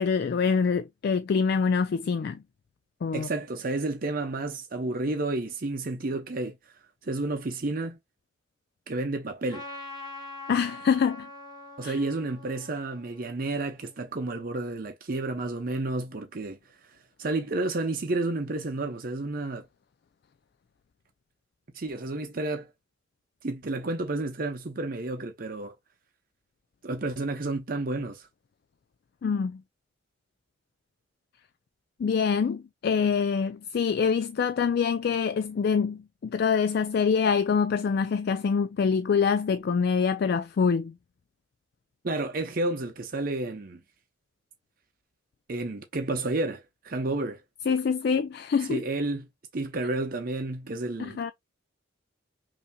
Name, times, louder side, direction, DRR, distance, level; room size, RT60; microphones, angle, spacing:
voice 1, 0.0-2.4 3.0-3.3 10.5-11.3 11.8-12.0 29.2-29.6 32.0-40.9 47.7-48.8 51.0-51.3, left 6 dB, 55° left, 0.3 m, -25 dB
voice 2, 3.1-6.5 7.0-8.0 8.9-9.6 11.8-16.6 17.2-19.6 21.7-22.7 23.4-25.7 26.8-28.3 42.0-43.8 45.5-47.4 48.7-49.3 49.5-51.3, right 2 dB, 45° right, 0.7 m, -31 dB
Trumpet, 9.5-14.2, left 2 dB, 25° left, 1.3 m, -44 dB
5.5 x 2.7 x 2.2 m
head